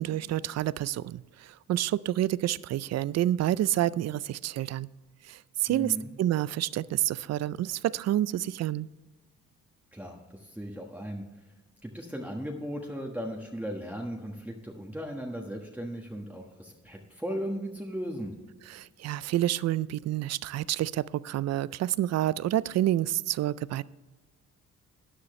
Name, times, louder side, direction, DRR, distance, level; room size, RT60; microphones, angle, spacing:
voice 1, 0.0-4.9 5.2-8.9 18.7-23.8, right 13 dB, 60° right, 19 dB, 0.4 m, -28 dB
voice 2, 5.7-6.1 9.9-11.3 11.8-18.3, equal, 5° right, -1 dB, 1.4 m, -37 dB
13.5 x 9.7 x 3.2 m, 1.2 s
cardioid pair, 90°, 30 cm